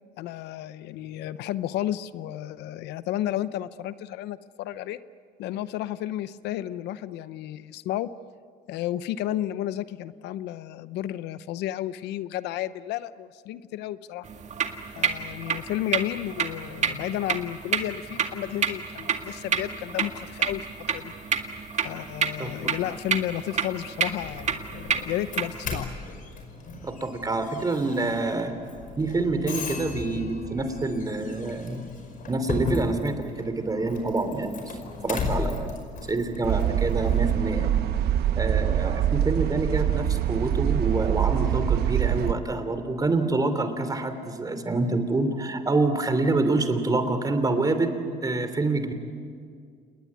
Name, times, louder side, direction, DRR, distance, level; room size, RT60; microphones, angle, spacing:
voice 1, 0.2-5.0 5.4-8.1 8.7-14.3 15.0-21.1 21.8-25.9, left 13 dB, 85° left, 15 dB, 0.8 m, -32 dB
sound 1, 14.3-25.7, right 6 dB, 45° right, 2.1 m, -30 dB
Doorbell, 24.2-37.4, left 3 dB, 55° left, 5.0 m, -36 dB
voice 2, 26.8-28.6 29.0-31.8 32.3-34.8 35.0-35.7 36.1-37.8 38.4-48.9, right 3 dB, 20° right, 9 dB, 3.1 m, -26 dB
sound 2, 36.4-42.3, right 10 dB, 70° right, 1.2 m, -24 dB
28.5 x 20.5 x 9.5 m, 2.2 s
cardioid pair, 110°, 17 cm